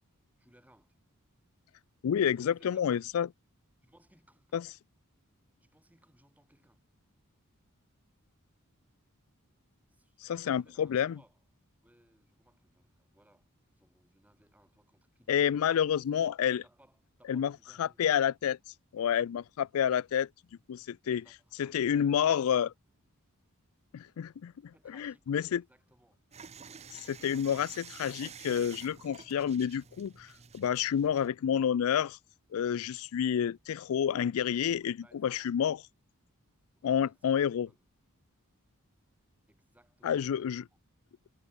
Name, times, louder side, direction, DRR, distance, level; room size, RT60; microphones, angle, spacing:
voice 1, 0.4-1.0 2.3-3.0 3.8-4.6 5.6-6.8 9.9-11.4 11.8-16.3 16.6-18.0 21.0-22.7 24.7-26.2 34.8-35.6 36.8-37.8 39.5-40.8, right 1 dB, 5° right, 4.2 m, -65 dB
voice 2, 2.0-3.3 4.5-4.7 10.2-11.2 15.3-16.6 17.3-17.5 17.8-18.6 18.9-20.3 20.7-21.2 21.6-22.7 23.9-24.5 24.9-25.6 26.9-32.2 32.5-35.0 35.2-35.8 36.8-37.7 40.0-40.6, left 8 dB, 65° left, 0.3 m, -29 dB
sound 1, 26.3-31.3, right 7 dB, 30° right, 0.7 m, -50 dB
head